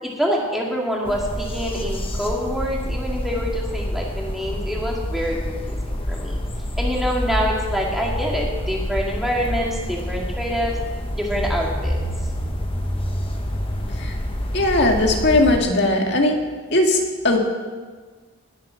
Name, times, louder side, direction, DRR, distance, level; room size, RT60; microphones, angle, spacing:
voice 1, 0.0-6.4 6.8-10.7 11.2-12.0, equal, ahead, -3 dB, 2.2 m, -26 dB
sound 1, 1.1-15.6, equal, 25° left, 1.3 m, -27 dB
voice 2, 14.5-16.4 16.7-17.4, left 2 dB, 50° left, 2 dB, 1.9 m, -18 dB
20.0 x 7.5 x 6.3 m, 1.5 s
head